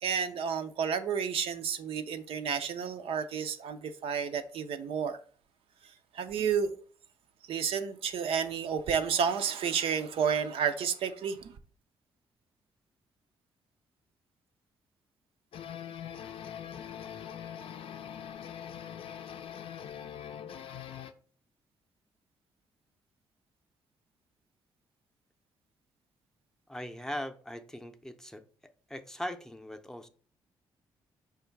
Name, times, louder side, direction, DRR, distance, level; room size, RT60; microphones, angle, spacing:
voice 1, 0.0-5.2 6.1-6.7 7.5-11.5, right 7 dB, 70° right, 0.5 m, -31 dB
sound 1, 15.5-21.1, left 9 dB, 65° left, 0.5 m, -42 dB
voice 2, 26.7-28.4 28.9-30.1, left 1 dB, 5° left, 0.6 m, -40 dB
4.9 x 2.3 x 4.5 m
supercardioid pair, 50°, 10 cm